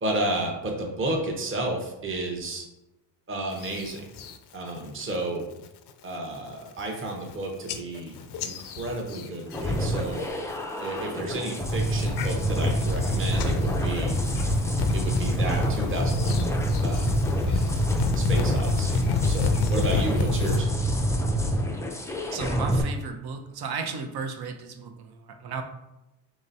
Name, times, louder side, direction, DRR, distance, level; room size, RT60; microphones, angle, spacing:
voice 1, 0.0-2.6 3.3-4.0 4.5-5.4 6.0-10.2 10.8-14.2 14.9-16.5 16.8-17.1 17.5-17.8 18.1-20.7, right 1 dB, 25° right, 0 dB, 1.0 m, -32 dB
sound 1, 3.6-4.4 4.8-5.2 5.5-5.9 6.4-6.5 6.7-7.3 7.7-10.2 10.5-11.0 11.5-20.6, left 6 dB, 60° left, 0.6 m, -31 dB
sound 2, 9.5-22.8, right 1 dB, 5° left, 0.5 m, -26 dB
voice 2, 22.3-25.6, right 5 dB, 55° right, 5 dB, 0.8 m, -34 dB
3.3 x 3.1 x 3.9 m, 0.96 s
cardioid pair, 90°, 45 cm